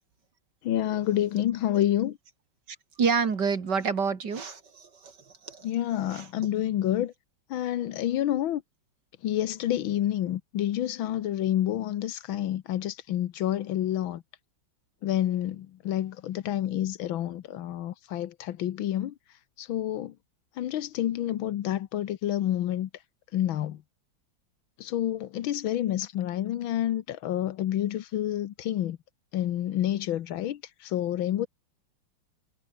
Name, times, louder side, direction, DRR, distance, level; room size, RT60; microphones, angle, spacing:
voice 1, 0.6-2.2 5.6-7.1 7.5-8.6 9.2-14.2 15.0-19.1 19.6-20.1 20.6-22.9 23.3-23.8 24.8-29.0 29.3-31.5, left 12 dB, 85° left, 1.8 m, -28 dB
voice 2, 3.0-5.1 5.4-5.7 6.1-6.3, right 5 dB, 60° right, 2.9 m, -28 dB
omnidirectional pair, 2.1 m